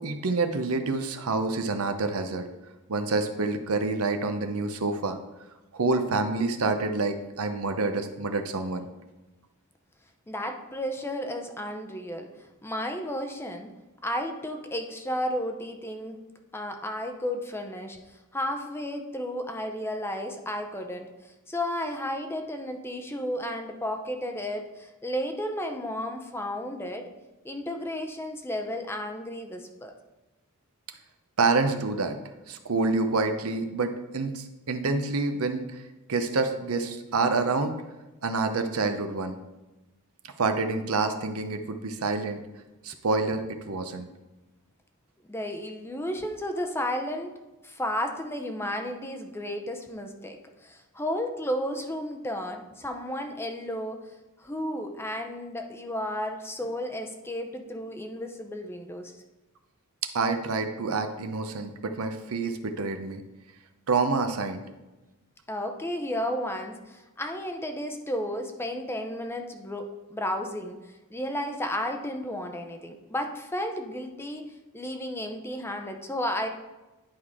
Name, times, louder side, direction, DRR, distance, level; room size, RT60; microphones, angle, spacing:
voice 1, 0.0-2.5 2.9-5.2 5.7-8.9 31.4-32.2 32.5-35.8 36.1-37.7 38.2-39.4 40.4-42.4 42.8-44.1 60.1-63.2 63.9-64.6, right 3 dB, 70° right, 7 dB, 0.7 m, -27 dB
voice 2, 10.3-12.3 12.6-13.7 14.0-16.2 16.5-18.0 18.3-21.1 21.5-27.0 27.4-29.9 45.3-47.3 47.6-54.0 54.4-59.1 65.5-70.8 71.1-74.5 74.7-76.5, left 1 dB, 10° left, 5 dB, 0.6 m, -33 dB
10.5 x 4.8 x 3.6 m, 1.1 s
head